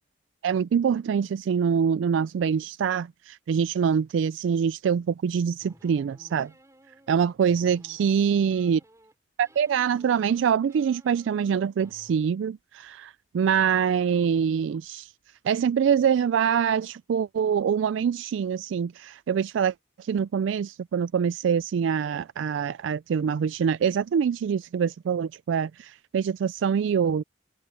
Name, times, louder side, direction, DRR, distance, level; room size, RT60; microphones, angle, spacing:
voice 1, 0.4-6.5 7.1-8.8 9.4-15.1 15.4-27.2, right 7 dB, 75° right, 0.3 m, -25 dB
sound 1, 5.6-9.1 9.4-12.2, right 1 dB, 15° right, 3.7 m, -56 dB
open air
head